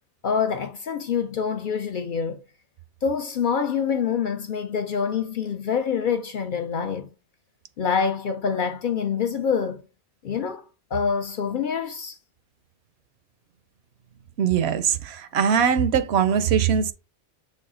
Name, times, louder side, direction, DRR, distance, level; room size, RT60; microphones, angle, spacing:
voice 1, 0.2-2.4 3.0-7.1 7.8-9.8 10.2-10.6 10.9-12.2, left 6 dB, 60° left, 0.6 m, -26 dB
voice 2, 14.4-16.9, right 7 dB, 70° right, 0.8 m, -21 dB
6.2 x 2.3 x 3.7 m
omnidirectional pair, 1.2 m